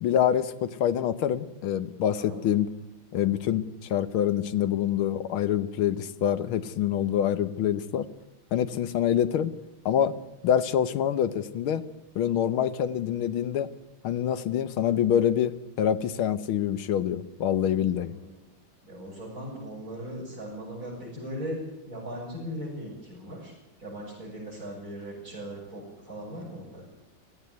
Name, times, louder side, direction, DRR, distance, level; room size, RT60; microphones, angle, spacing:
voice 1, 0.0-2.7 3.1-3.6 3.9-8.1 8.5-9.5 9.9-10.2 10.4-11.8 12.2-13.7 14.0-18.1, left 9 dB, 85° left, 14 dB, 1.8 m, -26 dB
voice 2, 18.8-21.6 21.8-26.8, equal, 40° right, -9 dB, 8.4 m, -39 dB
18.0 x 15.5 x 9.4 m, 0.95 s
omnidirectional pair, 2.2 m